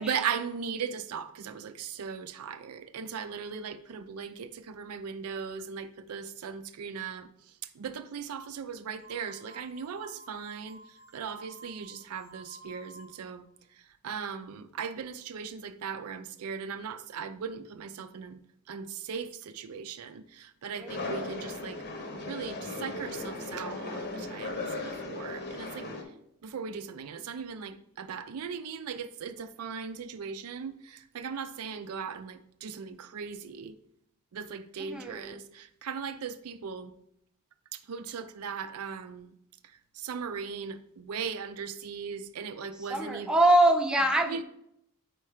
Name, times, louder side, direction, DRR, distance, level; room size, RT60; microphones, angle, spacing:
voice 1, 0.0-13.4 13.7-18.4 18.7-21.8 22.2-25.9 26.4-33.8 34.3-36.9 37.7-39.4 39.6-43.3 44.3-44.4, right 6 dB, 75° right, 0.4 m, -38 dB
sound 1, 9.0-13.4, right 1 dB, 30° right, 0.8 m, -52 dB
voice 2, 20.8-21.2 34.8-35.4 42.8-44.4, right 1 dB, 5° right, 0.5 m, -25 dB
sound 2, 20.9-26.0, left 2 dB, 50° left, 0.9 m, -37 dB
4.6 x 4.4 x 4.8 m
head